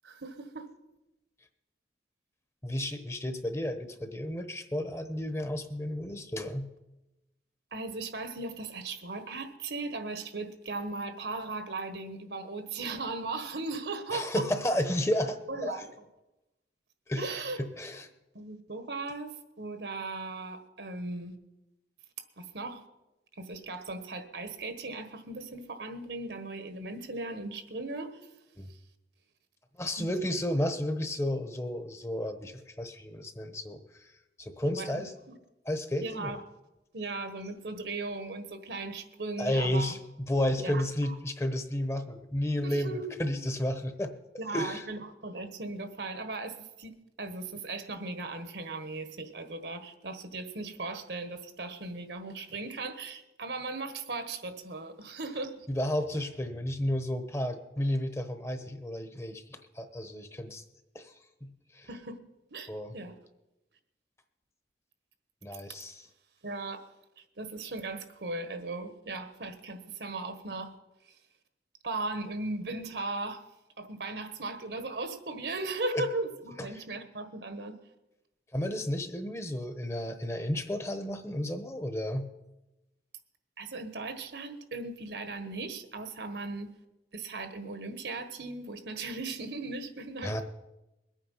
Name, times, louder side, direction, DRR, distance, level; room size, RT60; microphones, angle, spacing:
voice 1, 0.0-0.7 7.7-14.4 15.5-15.8 17.2-17.6 18.3-21.3 22.4-22.8 23.4-28.2 30.0-30.1 34.6-35.4 36.0-36.4 36.9-39.9 40.6-41.1 42.6-43.0 43.4-43.5 44.4-55.7 61.9-62.2 62.5-63.1 66.4-66.8 67.4-70.7 71.8-73.4 73.8-77.7 83.6-86.7 87.1-90.4, right 3 dB, 75° right, 9 dB, 1.4 m, -37 dB
voice 2, 2.6-6.7 14.1-15.9 17.1-18.1 28.6-28.7 29.8-34.1 34.4-35.1 35.6-36.3 39.4-44.1 44.5-44.9 55.7-60.6 60.9-61.1 61.4-61.9 62.7-62.9 65.4-66.1 75.9-76.1 76.6-76.8 78.5-82.3 90.2-90.4, left 1 dB, 15° left, 9 dB, 0.9 m, -32 dB
21.5 x 9.0 x 5.6 m, 0.98 s
head